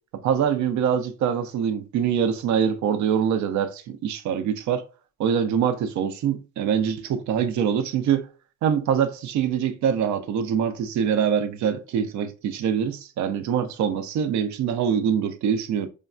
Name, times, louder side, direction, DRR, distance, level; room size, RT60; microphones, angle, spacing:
voice 1, 0.2-4.8 5.2-8.3 8.6-15.9, right 8 dB, 70° right, 0.5 m, -24 dB
3.2 x 2.2 x 2.4 m
cardioid pair, 90°, 30 cm